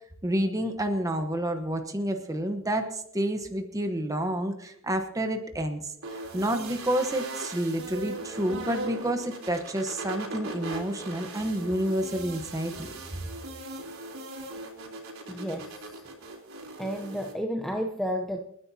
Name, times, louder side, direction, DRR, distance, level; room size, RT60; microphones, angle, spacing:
voice 1, 0.2-5.9 6.3-12.9, right 1 dB, 15° right, 5 dB, 1.0 m, -29 dB
sound 1, 6.0-17.3, right 2 dB, 75° right, 3.5 m, -39 dB
voice 2, 15.3-16.0 16.8-18.4, equal, ahead, 2 dB, 0.7 m, -32 dB
28.0 x 9.9 x 2.8 m, 0.76 s
head